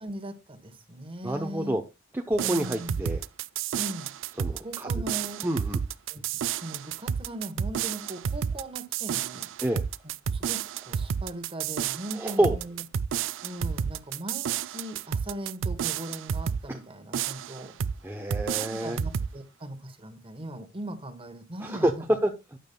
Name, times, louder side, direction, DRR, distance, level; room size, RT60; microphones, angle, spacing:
voice 1, 0.0-1.8 2.4-3.0 3.7-4.1 4.6-5.5 6.1-9.5 10.3-12.8 13.4-17.8 18.5-22.0, right 1 dB, 25° right, 1.2 m, -39 dB
voice 2, 1.2-1.8 2.1-3.2 4.4-4.9 5.4-5.8 9.6-9.8 12.2-12.6 16.7-16.8 18.0-19.0 21.6-21.9 22.2-22.6, right 1 dB, 10° right, 0.7 m, -28 dB
sound 1, 2.3-16.7 17.1-18.0 18.3-19.3, right 7 dB, 65° right, 0.4 m, -31 dB
12.0 x 9.1 x 2.2 m
head